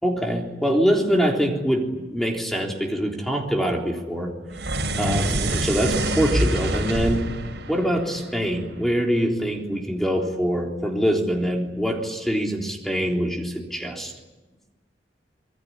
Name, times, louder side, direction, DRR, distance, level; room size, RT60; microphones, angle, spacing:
voice 1, 0.0-4.3 4.9-7.2 7.7-14.1, equal, ahead, 0 dB, 3.6 m, -24 dB
sound 1, 4.5-8.9, right 1 dB, 70° right, 4.9 m, -26 dB
26.5 x 22.0 x 9.8 m, 1.2 s
head